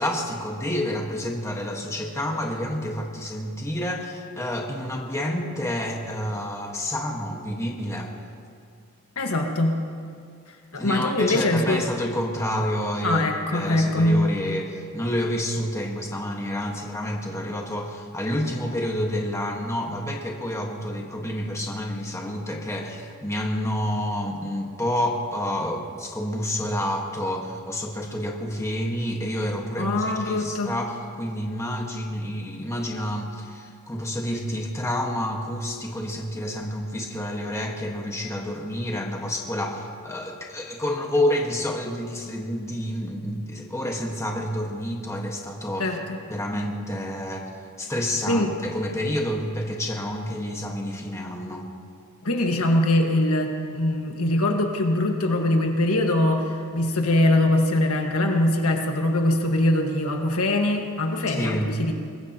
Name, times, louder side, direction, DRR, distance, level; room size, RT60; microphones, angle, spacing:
voice 1, 0.0-8.1 10.8-13.2 13.5-46.0 46.3-47.5 47.8-51.7 61.3-61.7, left 1 dB, 15° left, 0 dB, 1.5 m, -29 dB
voice 2, 9.1-9.8 10.7-11.8 13.0-14.3 29.8-30.7 45.8-46.2 48.3-48.5 52.2-61.9, left 1 dB, 75° left, 3 dB, 1.6 m, -22 dB
23.0 x 19.5 x 2.9 m, 2.3 s
head